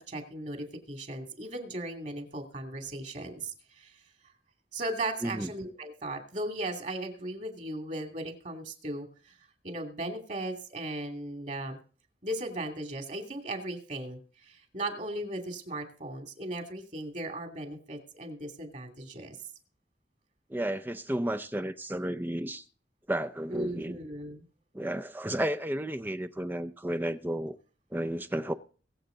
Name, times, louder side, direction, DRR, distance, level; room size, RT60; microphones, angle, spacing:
voice 1, 0.0-3.9 4.7-9.3 9.6-11.8 12.2-19.4 23.5-24.4, right 1 dB, 45° right, 2.6 m, -37 dB
voice 2, 20.5-22.6 23.1-24.0 24.7-27.6 27.9-28.5, right 1 dB, 10° right, 0.5 m, -32 dB
22.5 x 7.8 x 3.9 m
head